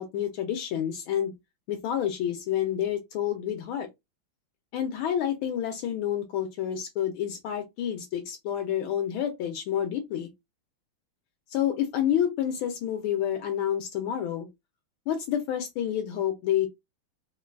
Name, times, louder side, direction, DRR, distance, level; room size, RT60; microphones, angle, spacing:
voice 1, 0.0-1.4 1.7-3.9 4.7-10.3 11.5-14.5 15.1-16.7, left 10 dB, 80° left, 1.4 m, -29 dB
3.8 x 2.3 x 2.2 m
omnidirectional pair, 2.3 m